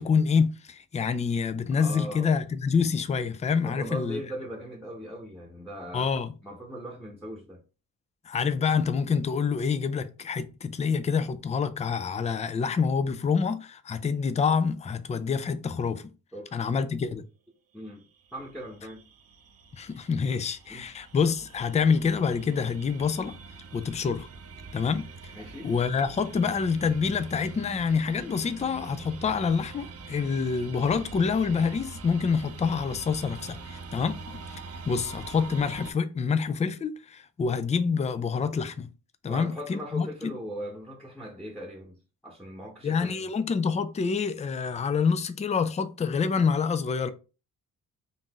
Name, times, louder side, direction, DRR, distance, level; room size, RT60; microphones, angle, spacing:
voice 1, 0.0-4.2 5.9-6.3 8.3-16.0 16.5-17.2 19.7-23.4 23.7-24.3 24.7-25.1 25.6-34.4 34.8-38.9 39.2-40.3 42.8-47.1, left 5 dB, 20° left, 0.3 m, -27 dB
voice 2, 1.8-2.3 3.6-6.1 6.4-7.6 16.3-16.6 17.7-19.0 20.7-20.9 25.3-25.7 39.3-42.0 42.2-43.3, equal, ahead, 0.9 m, -39 dB
sound 1, 18.2-35.9, right 4 dB, 45° right, 0.7 m, -44 dB
3.9 x 2.6 x 3.5 m
cardioid pair, 105°, 35 cm